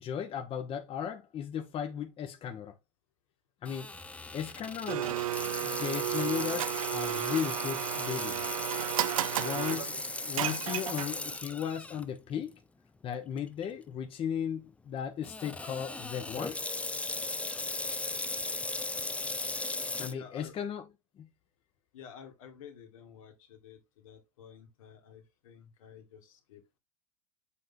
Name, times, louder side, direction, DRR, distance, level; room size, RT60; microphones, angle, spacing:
voice 1, 0.0-2.7 3.6-3.9 4.3-5.1 5.6-8.5 9.4-12.5 13.0-16.6 20.0-20.8 21.2-21.3, left 8 dB, 30° left, 1.2 m, -36 dB
Water tap faucet / Sink (filling or washing), 3.6-12.0 12.5-12.6 13.4-13.6 15.2-20.1, left 2 dB, 5° left, 0.6 m, -37 dB
Domestic sounds home sounds, 4.9-11.4, right 13 dB, 80° right, 0.7 m, -33 dB
voice 2, 20.0-20.6 21.9-26.8, left 8 dB, 75° left, 2.3 m, -51 dB
7.6 x 4.0 x 3.9 m
hypercardioid pair, 115°, 17 cm